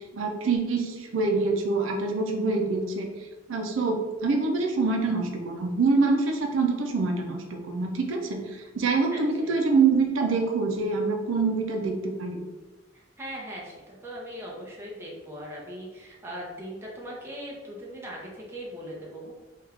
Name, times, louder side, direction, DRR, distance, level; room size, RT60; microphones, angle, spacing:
voice 1, 0.1-3.1 3.5-8.4 8.7-12.4, right 4 dB, 85° right, 2 dB, 0.5 m, -25 dB
voice 2, 9.1-9.6 12.9-19.3, equal, 15° right, -4 dB, 0.7 m, -40 dB
3.3 x 2.4 x 3.4 m, 1.2 s
head